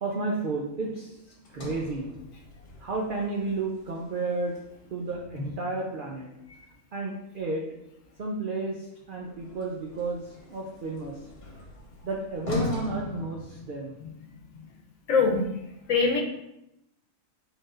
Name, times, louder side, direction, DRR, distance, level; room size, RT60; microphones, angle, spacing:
voice 1, 0.0-1.2 1.5-2.1 2.8-4.6 4.9-6.3 6.9-7.6 8.2-11.2 12.0-14.0, right 3 dB, 60° right, -1 dB, 0.5 m, -32 dB
Sliding door, 1.4-5.7 9.2-14.1, left 3 dB, 40° left, 1.1 m, -40 dB
voice 2, 15.1-15.5 15.9-16.2, left 4 dB, 75° left, 1 dB, 1.1 m, -22 dB
4.8 x 4.4 x 2.5 m, 0.86 s
omnidirectional pair, 1.5 m